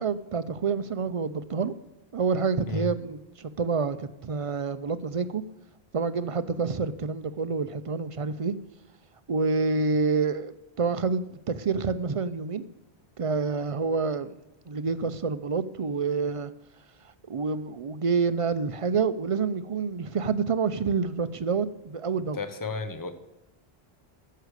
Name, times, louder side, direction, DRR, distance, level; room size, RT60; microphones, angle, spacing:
voice 1, 0.0-1.7 2.1-5.4 5.9-8.5 9.3-12.6 13.2-14.3 14.7-16.5 17.3-22.4, right 5 dB, 45° right, 13 dB, 0.5 m, -28 dB
voice 2, 22.3-23.1, left 4 dB, 20° left, 10 dB, 0.8 m, -33 dB
9.7 x 6.7 x 6.4 m, 0.95 s
omnidirectional pair, 1.0 m